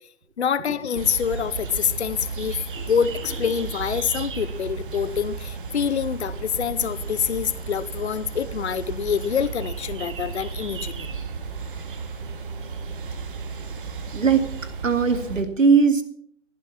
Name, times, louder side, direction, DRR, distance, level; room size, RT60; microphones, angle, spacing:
voice 1, 0.4-11.1, left 7 dB, 60° left, 16 dB, 0.9 m, -26 dB
sound 1, 0.9-15.4, right 5 dB, 40° right, 2.0 m, -34 dB
voice 2, 14.1-14.5 14.8-16.0, right 5 dB, 75° right, 8 dB, 2.6 m, -19 dB
15.0 x 12.0 x 6.0 m, 0.63 s
figure-of-eight pair, 150°, 39 cm